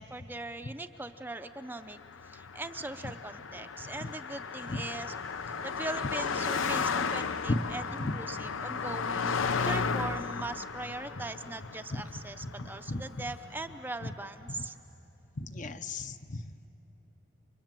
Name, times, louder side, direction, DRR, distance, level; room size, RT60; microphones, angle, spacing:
voice 1, 0.0-2.0 2.3-5.1 5.5-7.8 8.1-14.8, right 2 dB, 10° right, 7 dB, 0.5 m, -40 dB
Car passing by, 1.9-13.4, left 5 dB, 85° left, 0.7 m, -34 dB
voice 2, 12.4-13.2 14.0-14.1 14.5-14.6 15.4-16.7, left 2 dB, 40° left, 9 dB, 0.7 m, -35 dB
30.0 x 24.5 x 7.5 m, 3.0 s
head